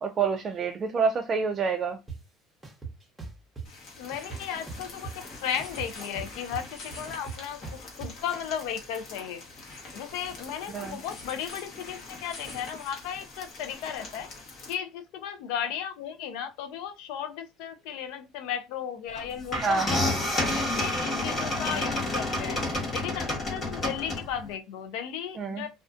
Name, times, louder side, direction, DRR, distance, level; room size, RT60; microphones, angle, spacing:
voice 1, 0.0-2.0 10.7-11.0 19.6-20.6 25.4-25.6, right 5 dB, 35° right, 0.3 m, -28 dB
sound 1, 2.1-2.2 2.6-3.7 4.1-5.3 5.6-8.1, right 4 dB, 15° right, 0.8 m, -39 dB
sound 2, 3.6-14.7, left 3 dB, 55° left, 1.0 m, -44 dB
voice 2, 4.0-9.4 9.9-14.3 14.7-20.1 20.5-22.6 22.9-25.7, left 8 dB, 75° left, 0.4 m, -35 dB
sound 3, 19.2-19.3 19.5-24.5, left 1 dB, 40° left, 1.1 m, -29 dB
2.4 x 2.3 x 2.4 m
cardioid pair, 120°, 0 cm